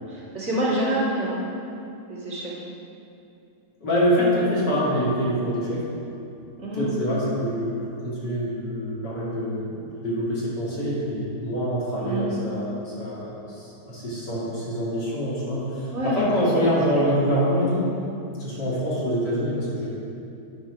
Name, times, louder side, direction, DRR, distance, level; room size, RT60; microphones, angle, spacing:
voice 1, 0.1-1.4 2.1-2.5 6.6-6.9 12.0-12.4 15.9-16.2, right 1 dB, 45° right, -8 dB, 2.2 m, -27 dB
voice 2, 3.8-5.9 6.8-17.8 18.4-19.9, equal, 90° left, -7 dB, 2.7 m, -25 dB
9.3 x 4.4 x 5.9 m, 2.6 s
omnidirectional pair, 1.8 m